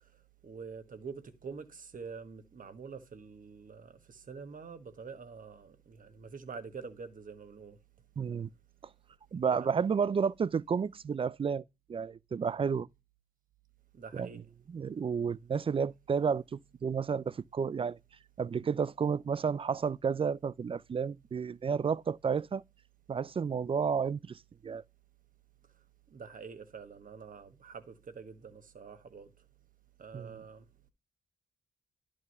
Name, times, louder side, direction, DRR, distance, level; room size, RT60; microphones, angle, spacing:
voice 1, 0.4-7.8 9.5-9.7 13.9-14.4 26.1-29.3 30.0-30.7, right 5 dB, 55° right, 1.3 m, -46 dB
voice 2, 8.2-8.5 9.3-11.6 11.9-12.9 14.1-18.0 18.4-22.6 23.1-24.8 30.1-30.4, right 6 dB, 35° right, 0.4 m, -31 dB
11.0 x 3.7 x 5.4 m
supercardioid pair, 55°, 17 cm